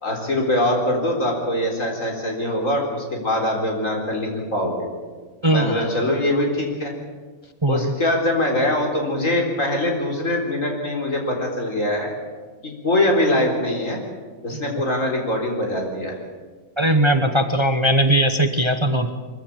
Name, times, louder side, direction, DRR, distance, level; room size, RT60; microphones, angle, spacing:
voice 1, 0.0-4.9 5.5-6.9 7.7-12.1 12.6-14.0 14.4-16.2, left 1 dB, 70° left, 1 dB, 4.4 m, -23 dB
voice 2, 5.4-5.8 7.6-7.9 14.5-14.6 16.8-19.1, right 1 dB, 25° right, 7 dB, 1.0 m, -19 dB
23.0 x 15.0 x 8.7 m, 1.4 s
omnidirectional pair, 1.4 m